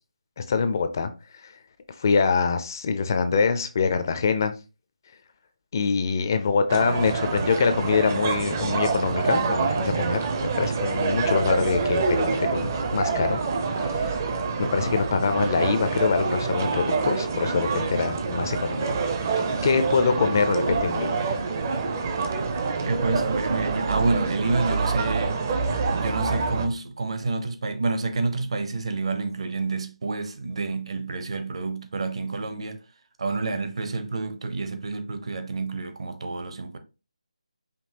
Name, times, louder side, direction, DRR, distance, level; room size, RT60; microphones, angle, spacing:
voice 1, 0.4-1.5 2.0-4.5 5.7-13.4 13.8-14.2 14.6-19.0 19.6-21.2, left 5 dB, 30° left, 0.4 m, -24 dB
sound 1, 6.7-26.7, right 4 dB, 25° right, 0.5 m, -26 dB
voice 2, 22.8-25.4 26.0-32.8 33.2-36.8, right 3 dB, 55° right, 0.8 m, -28 dB
5.2 x 2.8 x 2.8 m
figure-of-eight pair, 165°, 4 cm